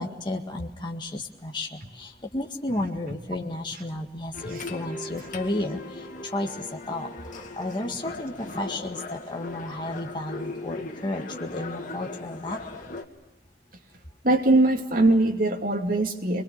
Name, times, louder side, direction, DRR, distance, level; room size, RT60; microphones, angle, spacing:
voice 1, 0.0-5.8 6.3-6.5 6.9-7.1 7.3-12.6, left 1 dB, 25° left, 1 dB, 1.8 m, -32 dB
sound 1, 4.3-13.0, left 2 dB, 45° left, 2.4 m, -38 dB
voice 2, 14.2-16.4, right 2 dB, 55° right, 1 dB, 2.7 m, -22 dB
28.0 x 22.5 x 6.6 m, 0.95 s
head